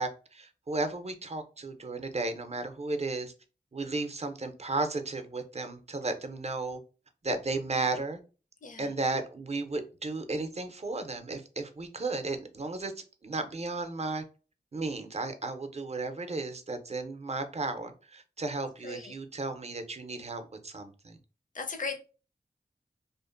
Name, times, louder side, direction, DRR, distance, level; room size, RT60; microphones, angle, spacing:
voice 1, 0.0-3.3 3.7-6.8 7.2-8.2 8.8-12.9 13.2-14.2 14.7-21.2, right 3 dB, 40° right, 7 dB, 0.5 m, -34 dB
voice 2, 8.6-8.9 18.8-19.2 21.5-22.0, left 4 dB, 50° left, 6 dB, 0.5 m, -37 dB
2.5 x 2.4 x 2.4 m, 0.34 s
cardioid pair, 40°, 17 cm